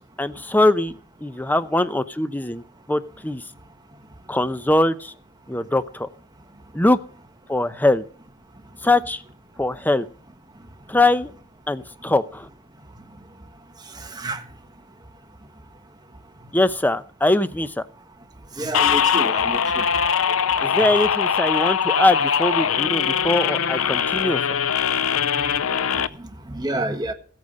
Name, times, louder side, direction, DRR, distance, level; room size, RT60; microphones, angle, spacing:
voice 1, 0.2-3.4 4.3-5.1 5.5-6.1 6.7-7.0 7.5-8.0 8.8-9.2 9.6-10.1 10.9-11.3 11.7-12.5 16.5-17.7 20.6-24.4, left 2 dB, 10° left, 0.7 m, -21 dB
voice 2, 14.1-14.4 18.6-19.8 26.2-27.1, right 1 dB, 20° right, 1.5 m, -28 dB
sound 1, 18.7-26.1, left 7 dB, 85° left, 0.6 m, -21 dB
15.5 x 8.7 x 5.4 m
head